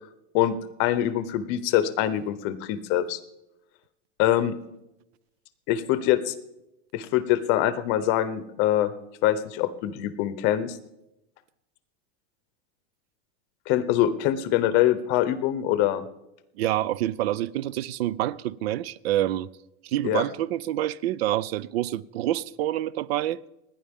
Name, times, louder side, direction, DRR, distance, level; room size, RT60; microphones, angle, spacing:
voice 1, 0.3-3.2 4.2-4.5 5.7-6.3 6.9-8.9 9.2-10.8 13.7-16.0 20.0-20.2, left 12 dB, 35° left, 0.8 m, -24 dB
voice 2, 16.6-19.5 19.8-23.4, right 13 dB, 70° right, 0.6 m, -27 dB
29.0 x 10.0 x 3.6 m
supercardioid pair, 175°, 32 cm